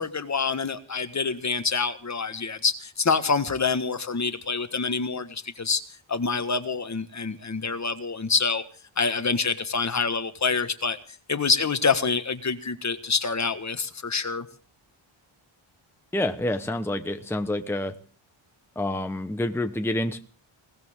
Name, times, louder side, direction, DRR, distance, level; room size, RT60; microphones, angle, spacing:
voice 1, 0.0-5.8 6.1-8.6 9.0-11.0 11.3-14.5, left 5 dB, 35° left, 10 dB, 1.6 m, -26 dB
voice 2, 16.1-18.0 18.7-20.2, left 1 dB, 5° left, 7 dB, 1.0 m, -28 dB
20.5 x 18.5 x 3.7 m, 0.41 s
wide cardioid pair, 165°, 49 cm